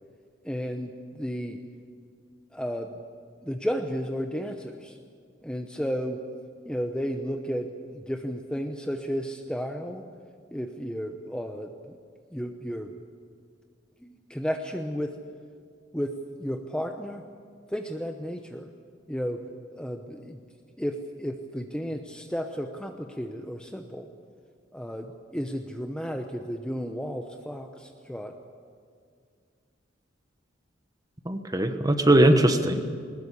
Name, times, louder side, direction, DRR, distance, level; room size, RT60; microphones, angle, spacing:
voice 1, 0.4-1.6 2.5-2.9 3.4-5.0 5.4-6.2 6.7-10.1 10.5-12.0 12.3-12.9 14.0-15.1 15.9-17.2 17.7-18.7 19.1-19.4 19.7-20.4 20.8-24.1 24.7-28.3, equal, 5° left, 4 dB, 0.9 m, -33 dB
voice 2, 31.2-32.9, right 1 dB, 20° right, 8 dB, 1.2 m, -20 dB
20.5 x 20.0 x 8.3 m, 2.1 s
head